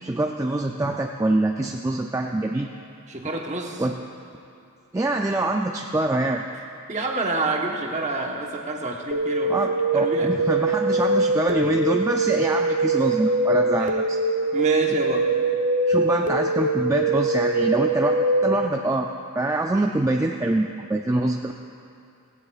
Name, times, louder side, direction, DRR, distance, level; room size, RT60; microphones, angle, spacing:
voice 1, 0.0-2.7 3.8-4.0 4.9-6.4 9.5-14.2 15.9-19.1 19.4-21.5, right 2 dB, 15° right, 2 dB, 0.3 m, -25 dB
voice 2, 3.1-3.8 6.9-9.5 9.9-10.3 13.8-13.9 14.5-15.3, right 2 dB, 30° right, 1 dB, 1.1 m, -28 dB
sound 1, 9.1-18.7, right 2 dB, 65° right, 0.7 m, -23 dB
16.5 x 16.5 x 2.4 m, 2.5 s
head